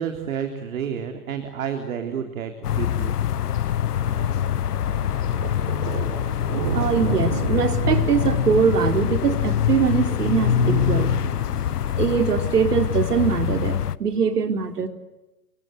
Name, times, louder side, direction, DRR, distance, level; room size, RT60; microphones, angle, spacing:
voice 1, 0.0-3.2, right 8 dB, 65° right, 6 dB, 3.8 m, -30 dB
sound 1, 2.6-14.0, left 10 dB, 85° left, 1.1 m, -24 dB
Thunder, 3.5-13.5, right 13 dB, 45° right, 1.2 m, -34 dB
voice 2, 6.7-11.1 12.0-14.9, right 6 dB, 90° right, 7 dB, 4.1 m, -22 dB
30.0 x 24.5 x 8.2 m, 1.0 s
hypercardioid pair, 155°, 45 cm